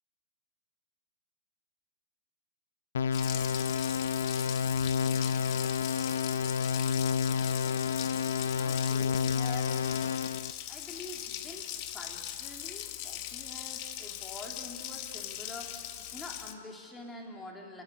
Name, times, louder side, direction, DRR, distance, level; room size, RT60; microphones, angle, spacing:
sound 1, 2.9-10.5, left 7 dB, 90° left, 0.7 m, -30 dB
Water tap faucet, 3.1-16.5, left 12 dB, 35° left, 1.2 m, -40 dB
voice 1, 8.5-9.9 10.7-17.8, left 2 dB, 10° left, 0 dB, 2.8 m, -46 dB
29.5 x 14.5 x 9.8 m, 2.2 s
hypercardioid pair, 165°, 0 cm